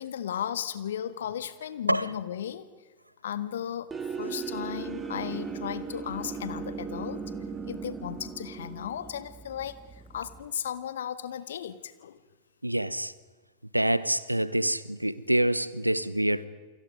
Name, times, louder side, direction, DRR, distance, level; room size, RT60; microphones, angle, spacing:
voice 1, 0.0-2.7 3.2-3.9 4.2-7.3 7.7-9.8 10.1-12.2, left 9 dB, 60° left, 1.4 m, -35 dB
sound 1, 3.9-10.5, right 5 dB, 15° right, 1.8 m, -38 dB
voice 2, 12.6-13.1 13.7-16.5, right 1 dB, 85° right, 0.9 m, -26 dB
28.5 x 24.0 x 5.3 m
figure-of-eight pair, 90°, 0 cm